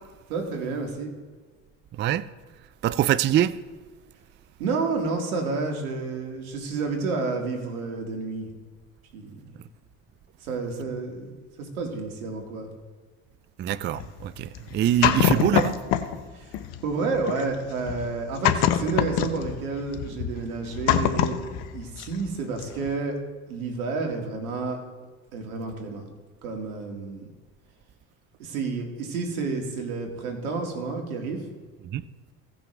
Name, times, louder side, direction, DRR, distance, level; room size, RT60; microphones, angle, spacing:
voice 1, 0.3-1.1 4.6-8.5 9.1-9.3 10.4-11.3 11.6-12.7 16.3-16.5 16.8-21.4 21.7-23.2 23.5-24.8 25.3-26.0 26.4-27.3 28.4-31.4, right 4 dB, 85° right, 2.1 m, -30 dB
voice 2, 2.8-3.6 13.6-15.8 31.8-32.0, right 12 dB, 30° right, 0.4 m, -24 dB
sound 1, 14.0-16.2 16.5-22.3 22.6-22.9, left 10 dB, 65° left, 1.0 m, -25 dB
17.0 x 6.1 x 3.3 m
hypercardioid pair, 75°, 42 cm